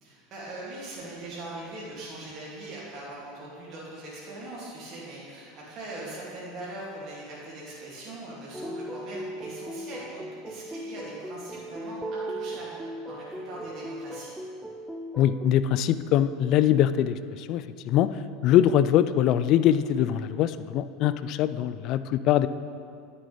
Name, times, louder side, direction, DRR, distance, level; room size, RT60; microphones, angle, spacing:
voice 1, 0.0-14.3, right 2 dB, 45° right, -6 dB, 2.5 m, -41 dB
sound 1, 8.5-15.5, right 1 dB, 5° right, 0.5 m, -37 dB
voice 2, 15.2-22.5, left 11 dB, 50° left, 14 dB, 0.3 m, -23 dB
9.7 x 9.5 x 3.4 m, 2.4 s
figure-of-eight pair, 75°, 0 cm